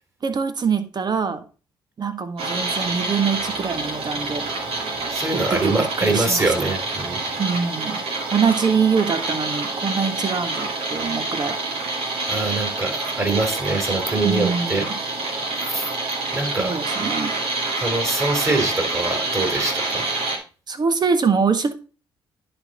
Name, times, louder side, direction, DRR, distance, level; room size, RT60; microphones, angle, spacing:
voice 1, 0.2-1.4 2.0-4.5 5.3-6.7 7.4-8.0 8.3-11.6 14.2-15.0 16.4-17.3 20.7-21.7, right 5 dB, 40° right, 10 dB, 1.5 m, -24 dB
sound 1, 2.4-20.4, right 2 dB, 65° right, 2.4 m, -27 dB
voice 2, 5.1-7.4 12.3-14.9 15.6-15.9 16.3-16.7 17.8-20.1, right 2 dB, 25° right, 2 dB, 4.1 m, -24 dB
10.5 x 4.5 x 3.9 m, 0.35 s
hypercardioid pair, 55°, 11 cm